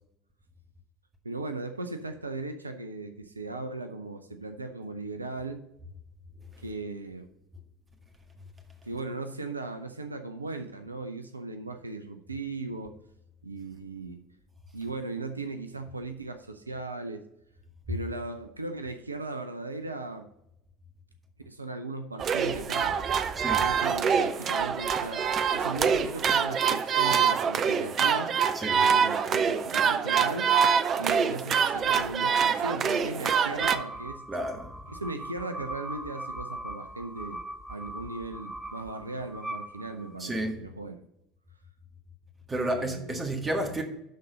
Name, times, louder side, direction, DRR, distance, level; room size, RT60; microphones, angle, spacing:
voice 1, 1.2-5.6 6.6-7.3 8.8-12.9 13.4-14.2 14.7-17.2 17.9-20.3 21.5-23.0 23.6-25.2 25.5-28.3 28.8-30.5 31.0-34.2 34.9-37.4 37.7-41.0 42.6-43.2, right 2 dB, 85° right, 0.5 m, -37 dB
sound 1, 22.2-33.8, right 7 dB, 35° right, 0.5 m, -25 dB
voice 2, 23.4-23.7 28.5-28.8 34.3-34.7 40.2-40.6 42.5-43.8, right 1 dB, 20° right, 1.7 m, -31 dB
sound 2, 33.6-40.4, right 1 dB, 5° right, 0.8 m, -40 dB
12.0 x 4.0 x 5.0 m
figure-of-eight pair, 70°, 0 cm